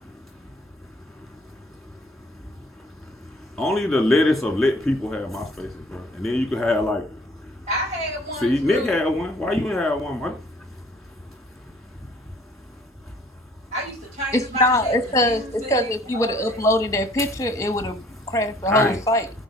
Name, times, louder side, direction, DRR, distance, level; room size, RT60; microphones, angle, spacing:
voice 1, 0.3-1.3 2.1-7.7 8.4-13.2 17.2-17.3 17.8-17.9 18.2-19.0, left 1 dB, ahead, 2.5 m, -26 dB
voice 2, 7.7-9.0 13.7-16.6, equal, 40° right, 6.3 m, -31 dB
voice 3, 14.3-19.3, left 1 dB, 20° left, 1.1 m, -22 dB
14.0 x 5.0 x 5.0 m
head